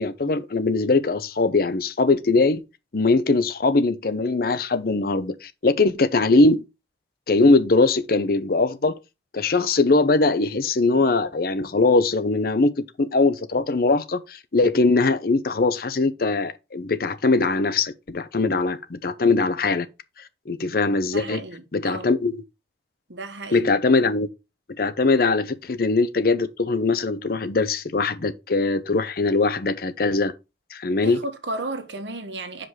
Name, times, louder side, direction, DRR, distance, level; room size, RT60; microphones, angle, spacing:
voice 1, 0.0-2.6 2.9-6.6 7.3-9.0 9.3-19.9 20.5-21.4 21.7-22.4 23.5-24.3 24.8-30.3 30.7-31.2, left 3 dB, 55° left, 0.7 m, -21 dB
voice 2, 21.1-22.1 23.1-23.6 31.0-32.7, right 2 dB, 85° right, 1.4 m, -33 dB
5.8 x 5.1 x 4.7 m
head